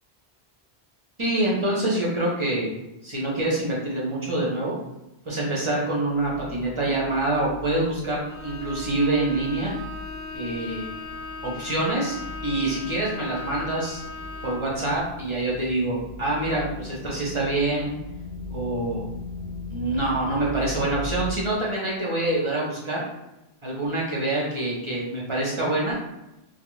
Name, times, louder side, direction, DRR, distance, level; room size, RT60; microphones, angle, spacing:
voice 1, 1.2-2.7 3.0-4.7 5.3-9.7 10.3-10.9 11.4-12.2 12.4-14.0 14.4-17.9 18.5-19.1 19.7-23.0 23.6-26.0, right 2 dB, 35° right, -5 dB, 0.5 m, -26 dB
sound 1, 6.1-21.3, left 3 dB, 85° right, 0.9 m, -40 dB
Bowed string instrument, 8.3-14.8, left 3 dB, 80° left, 0.9 m, -38 dB
2.3 x 2.2 x 3.0 m, 0.94 s
omnidirectional pair, 1.1 m